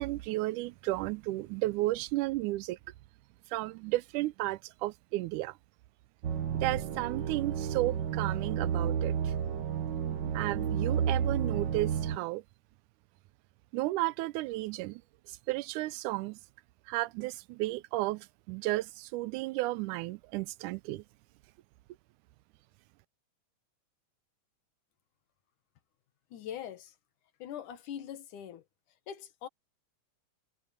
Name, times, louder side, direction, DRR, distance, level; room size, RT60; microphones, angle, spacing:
voice 1, 0.0-2.8 3.5-5.5 6.5-9.3 10.3-12.4 13.7-15.0 15.5-16.4 16.9-21.0, right 18 dB, 85° right, 2.1 m, -33 dB
sound 1, 6.2-12.2, right 8 dB, 65° right, 1.1 m, -31 dB
voice 2, 26.3-26.9 27.4-28.6 29.1-29.5, left 9 dB, 90° left, 3.0 m, -42 dB
omnidirectional pair, 3.5 m